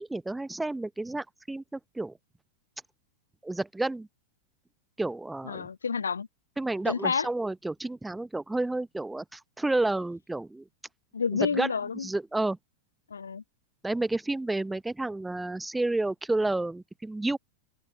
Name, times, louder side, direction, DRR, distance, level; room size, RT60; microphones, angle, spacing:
voice 1, 0.0-2.1 3.4-4.1 5.0-5.7 6.6-10.6 11.5-11.7 12.0-12.6 13.8-17.4, right 2 dB, 5° right, 0.9 m, -30 dB
voice 2, 5.4-6.3 6.9-7.3 11.1-12.1 13.1-13.4, left 6 dB, 75° left, 1.2 m, -29 dB
open air
figure-of-eight pair, 90°, 0 cm